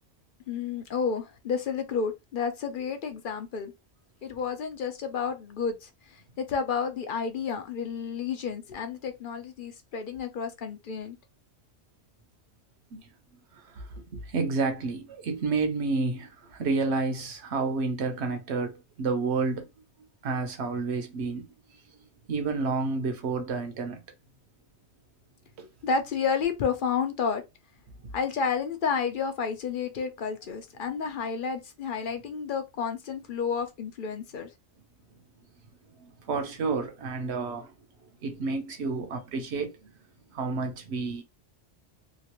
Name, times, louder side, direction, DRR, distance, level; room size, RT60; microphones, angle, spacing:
voice 1, 0.5-3.7 4.2-11.2 25.8-27.4 28.1-34.5, left 6 dB, 60° left, 0.6 m, -31 dB
voice 2, 13.5-19.7 20.2-21.5 21.9-24.0 25.6-25.7 36.0-37.7 38.2-39.8 40.3-41.2, right 4 dB, 65° right, 1.0 m, -30 dB
3.0 x 2.4 x 2.9 m
omnidirectional pair, 1.2 m